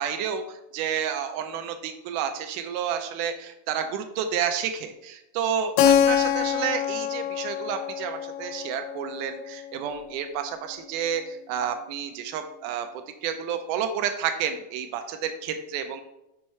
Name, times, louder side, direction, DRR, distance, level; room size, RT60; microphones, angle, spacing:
voice 1, 0.0-12.9 13.2-16.0, right 8 dB, 85° right, 7 dB, 1.9 m, -30 dB
Keyboard (musical), 5.8-10.3, left 9 dB, 80° left, 2.1 m, -25 dB
6.4 x 5.6 x 4.3 m, 0.91 s
omnidirectional pair, 4.2 m